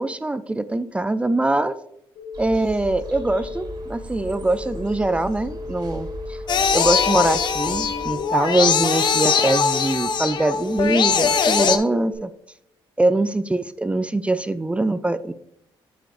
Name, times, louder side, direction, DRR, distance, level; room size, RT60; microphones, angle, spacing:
voice 1, 0.0-1.8 2.4-6.4 6.7-12.3 13.0-15.3, right 2 dB, 15° right, 13 dB, 0.4 m, -23 dB
sound 1, 2.2-12.2, left 3 dB, 90° left, 2.5 m, -37 dB
sound 2, 2.3-8.2, right 1 dB, 50° right, 2.0 m, -37 dB
sound 3, 6.5-11.8, left 6 dB, 55° left, 0.6 m, -21 dB
7.4 x 7.0 x 2.6 m, 0.74 s
cardioid pair, 90°, 9 cm